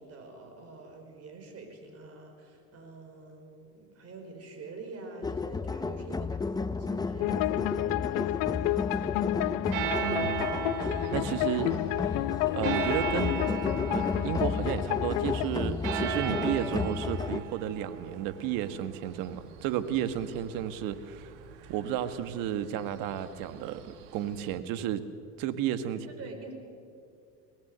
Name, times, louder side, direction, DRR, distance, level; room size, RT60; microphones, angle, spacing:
voice 1, 0.0-9.6 25.9-26.5, right 3 dB, 45° right, 5 dB, 5.0 m, -46 dB
sound 1, 5.2-17.4, left 4 dB, 10° left, 0.6 m, -32 dB
sound 2, 7.2-15.5, left 20 dB, 70° left, 0.5 m, -31 dB
sound 3, 9.7-24.6, right 9 dB, 85° right, 1.8 m, -38 dB
voice 2, 10.0-10.5 10.8-11.7 12.5-13.4 13.9-21.3 21.7-25.0 25.4-26.0, right 10 dB, 70° right, 11 dB, 1.5 m, -33 dB
23.0 x 18.0 x 8.0 m, 2.4 s
supercardioid pair, 100°, 34 cm